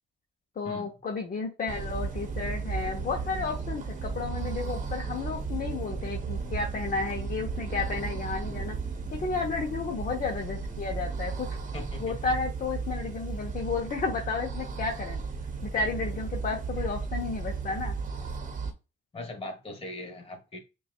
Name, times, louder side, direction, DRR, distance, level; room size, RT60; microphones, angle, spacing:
voice 1, 0.6-8.8 9.1-11.6 12.0-15.2 15.7-17.9, left 4 dB, 45° left, 0.8 m, -32 dB
sound 1, 1.7-18.7, right 5 dB, 40° right, 0.9 m, -34 dB
voice 2, 11.7-12.2 19.1-20.6, left 1 dB, 30° left, 1.3 m, -40 dB
5.5 x 2.4 x 2.3 m
cardioid pair, 90°, 20 cm